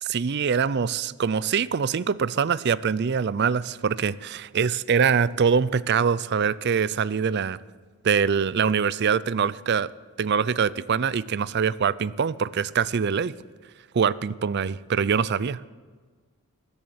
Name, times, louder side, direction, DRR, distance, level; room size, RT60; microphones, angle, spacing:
voice 1, 0.0-7.6 8.0-9.9 10.2-13.3 13.9-15.7, right 6 dB, 50° right, 19 dB, 0.4 m, -24 dB
20.5 x 7.1 x 7.9 m, 1.5 s
head